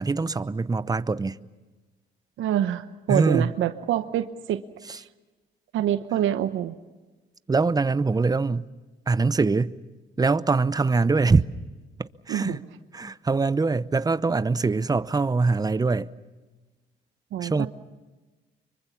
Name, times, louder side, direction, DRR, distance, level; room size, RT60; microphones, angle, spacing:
voice 1, 0.0-1.4 3.1-3.5 4.9-5.0 7.5-8.7 9.1-9.7 10.2-11.5 12.0-12.6 12.9-16.1 17.4-17.7, right 4 dB, 20° right, 0.7 m, -23 dB
voice 2, 2.4-4.6 5.0-5.1 5.7-6.7 12.3-12.6 17.3-17.7, right 11 dB, 80° right, 0.9 m, -26 dB
25.0 x 23.5 x 7.2 m
cardioid pair, 90°, 20 cm